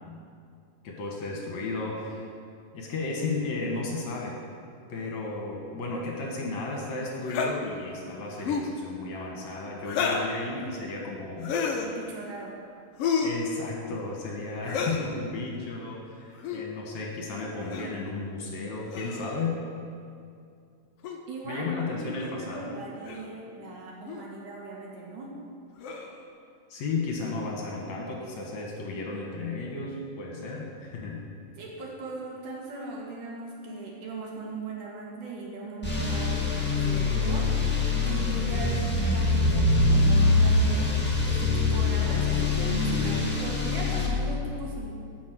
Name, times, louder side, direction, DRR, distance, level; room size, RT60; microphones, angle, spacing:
voice 1, 0.8-2.3 2.7-4.4 4.9-11.6 13.2-19.6 21.4-22.7 26.7-31.2, left 3 dB, 60° left, -1 dB, 2.5 m, -34 dB
sound 1, 7.3-7.5 8.4-8.7 9.9-10.3 11.4-11.9 13.0-13.4 14.7-15.1 16.4-16.6 17.7-17.9 18.9-19.4 21.0-21.2 22.2-22.3 23.0-23.3 24.1-24.2 25.8-26.2, left 5 dB, 90° left, 1.3 m, -30 dB
voice 2, 11.8-12.5 21.3-25.3 31.6-40.9 41.2-44.9, right 2 dB, 65° right, -2 dB, 3.1 m, -38 dB
sound 2, 35.8-44.1, left 3 dB, 10° left, 0.4 m, -24 dB
11.5 x 6.3 x 7.7 m, 2.3 s
omnidirectional pair, 4.0 m